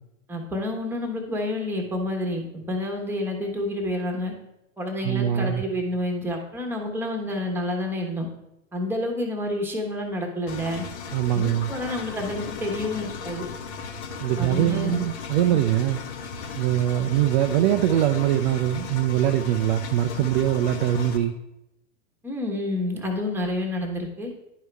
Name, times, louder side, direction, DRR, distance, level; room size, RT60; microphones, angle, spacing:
voice 1, 0.3-4.3 4.8-8.3 8.7-10.8 11.3-13.4 14.4-15.1 15.5-15.6 22.2-24.3, left 1 dB, 5° right, 2 dB, 1.1 m, -29 dB
voice 2, 5.0-5.6 11.1-11.7 14.2-16.0 16.5-21.3, right 12 dB, 40° right, 7 dB, 0.4 m, -22 dB
Engine, 10.5-21.2, left 5 dB, 55° left, 1.0 m, -36 dB
11.0 x 4.7 x 3.4 m, 0.89 s
hypercardioid pair, 120°, 40 cm